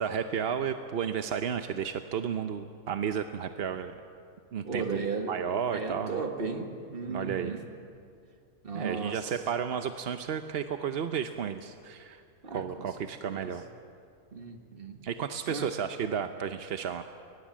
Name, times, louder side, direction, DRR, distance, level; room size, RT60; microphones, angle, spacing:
voice 1, 0.0-3.9 4.5-6.2 7.1-7.6 8.7-12.2 12.5-13.6 15.0-17.0, right 7 dB, 55° right, 8 dB, 0.8 m, -33 dB
voice 2, 4.6-5.3 5.7-7.6 8.6-9.2 12.4-12.6 13.0-13.5 14.3-15.0 15.5-15.7, right 4 dB, 35° right, 4 dB, 1.9 m, -35 dB
22.0 x 20.5 x 7.5 m, 2.3 s
omnidirectional pair, 1.7 m